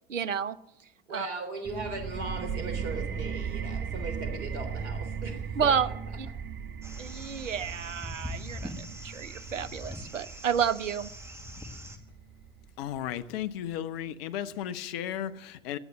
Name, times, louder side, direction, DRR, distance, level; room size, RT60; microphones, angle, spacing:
voice 1, 0.1-0.6 1.1-1.3 5.6-5.9 7.0-11.1, right 7 dB, 80° right, 18 dB, 0.8 m, -30 dB
voice 2, 1.1-5.9, right 2 dB, 60° right, 7 dB, 3.4 m, -38 dB
sound 1, 1.6-13.1, right 6 dB, 30° right, 1.1 m, -37 dB
sound 2, 6.8-12.0, left 1 dB, 5° right, 2.0 m, -42 dB
voice 3, 12.8-15.8, left 10 dB, 50° left, 12 dB, 1.0 m, -34 dB
16.0 x 9.8 x 7.8 m, 0.83 s
figure-of-eight pair, 85°, 37 cm